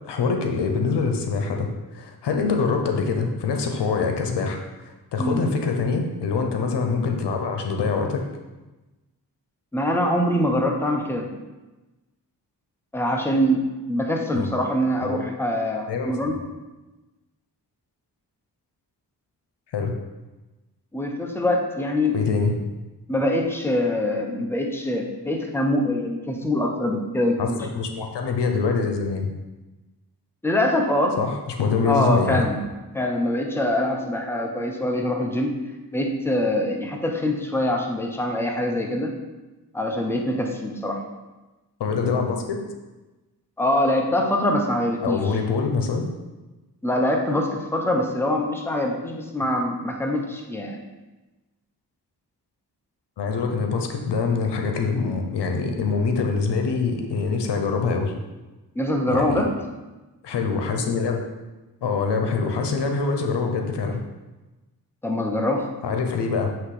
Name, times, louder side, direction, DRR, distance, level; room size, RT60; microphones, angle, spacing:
voice 1, 0.0-8.2 14.3-14.5 15.0-15.2 15.9-16.4 19.7-19.9 22.1-22.5 27.4-29.3 31.2-32.5 41.8-42.6 45.0-46.1 53.2-58.1 59.1-59.4 60.2-61.2 61.8-64.0 65.8-66.5, left 4 dB, 85° left, 3 dB, 0.9 m, -24 dB
voice 2, 9.7-11.3 12.9-16.4 20.9-22.2 23.1-27.6 30.4-31.2 31.8-32.6 32.9-35.6 35.9-39.2 39.7-41.0 43.6-45.3 46.8-50.8 58.7-59.5 65.0-65.7, left 1 dB, 5° left, 2 dB, 0.9 m, -24 dB
8.1 x 3.2 x 4.9 m, 1.1 s
cardioid pair, 65°, 40 cm